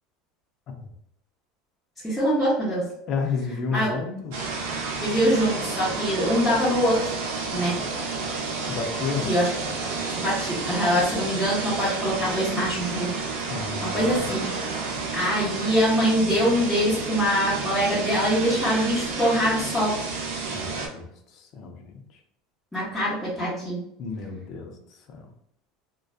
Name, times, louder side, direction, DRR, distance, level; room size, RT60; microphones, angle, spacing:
voice 1, 2.0-2.9 3.7-3.9 5.0-7.0 7.5-7.8 9.2-9.5 10.2-14.5 15.1-19.9 22.7-23.8, equal, 5° left, -11 dB, 1.0 m, -24 dB
voice 2, 3.1-4.5 7.8-7.9 8.6-9.3 13.5-14.3 20.5-22.2 24.0-24.8 25.1-25.3, left 5 dB, 45° left, 4 dB, 0.5 m, -32 dB
sound 1, 4.3-20.9, right 4 dB, 85° right, 0.6 m, -31 dB
2.5 x 2.2 x 2.4 m, 0.74 s
supercardioid pair, 130°, 0 cm